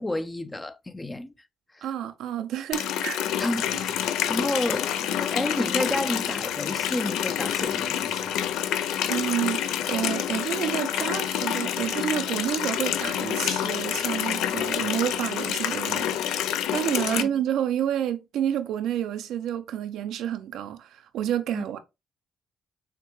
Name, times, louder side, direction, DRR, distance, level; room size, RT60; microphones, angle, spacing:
voice 1, 0.0-1.3 1.7-1.9 3.4-8.3 17.0-17.3 21.5-21.6, left 1 dB, 15° left, 0.5 m, -31 dB
voice 2, 1.8-3.4 3.7-3.8 9.1-16.2 16.7-21.8, right 10 dB, 85° right, 0.5 m, -29 dB
Water tap faucet, 2.7-17.2, left 10 dB, 90° left, 0.4 m, -28 dB
6.5 x 2.2 x 3.1 m
cardioid pair, 90°, 0 cm